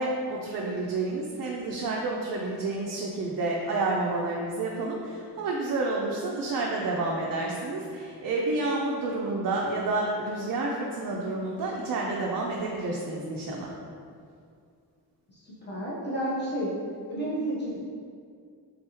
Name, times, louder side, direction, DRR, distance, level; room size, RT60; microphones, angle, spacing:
voice 1, 0.0-13.7, right 2 dB, 55° right, -3 dB, 0.5 m, -29 dB
voice 2, 15.3-16.7 17.1-17.8, right 1 dB, 25° left, -9 dB, 1.2 m, -31 dB
3.7 x 3.4 x 2.9 m, 2.2 s
wide cardioid pair, 130°, 40 cm